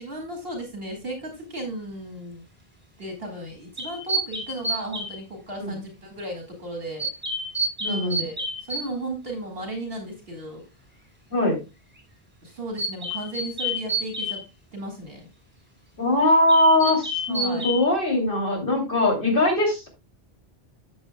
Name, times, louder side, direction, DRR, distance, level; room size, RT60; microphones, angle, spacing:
voice 1, 0.0-2.4 3.0-7.1 7.8-10.6 12.4-14.4 14.7-15.3 17.3-17.7, right 1 dB, 65° right, 2 dB, 2.4 m, -35 dB
sound 1, 3.8-5.2 7.0-8.9 12.8-14.4 16.5-17.8, right 1 dB, 10° right, 3.3 m, -29 dB
voice 2, 7.8-8.2 11.3-11.6 16.0-19.9, left 1 dB, 60° left, 0 dB, 3.1 m, -21 dB
12.5 x 7.8 x 2.2 m, 0.26 s
omnidirectional pair, 1.0 m